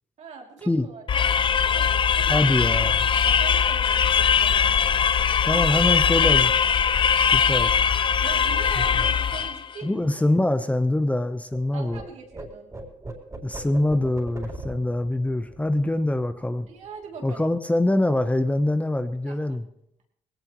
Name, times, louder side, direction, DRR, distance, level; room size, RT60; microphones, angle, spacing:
voice 1, 0.2-1.3 1.6-2.6 3.1-4.8 5.5-6.4 8.2-10.4 11.7-12.7 16.7-17.5 19.3-19.4, right 5 dB, 65° right, 1 dB, 3.0 m, -42 dB
sound 1, 1.1-9.7, left 7 dB, 40° left, 0.5 m, -21 dB
voice 2, 2.3-3.1 5.5-6.5 7.2-7.7 8.8-8.9 9.8-12.0 13.4-16.7 17.2-19.6, left 1 dB, 10° left, 9 dB, 0.9 m, -24 dB
sound 2, 8.2-11.6 11.9-16.9 17.1-17.4 17.7-18.2, right 2 dB, 25° right, 4.0 m, -42 dB
19.0 x 17.5 x 3.1 m, 0.75 s
cardioid pair, 75°, 13 cm